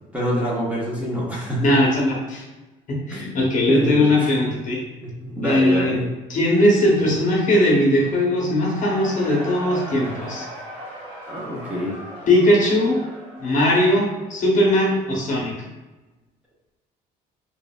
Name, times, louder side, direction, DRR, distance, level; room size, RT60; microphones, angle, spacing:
voice 1, 0.1-1.7 3.1-3.2 3.7-4.3 5.0-6.1 11.3-11.9, equal, 10° right, -6 dB, 0.7 m, -26 dB
voice 2, 1.6-2.4 2.9-4.8 5.4-5.9 6.3-10.4 12.3-13.0 13.4-15.5, left 1 dB, 50° left, -2 dB, 0.9 m, -19 dB
Cheering / Crowd, 8.4-15.1, equal, 30° right, 1.4 m, -38 dB
3.0 x 2.4 x 2.2 m, 1.1 s
cardioid pair, 110°, 17 cm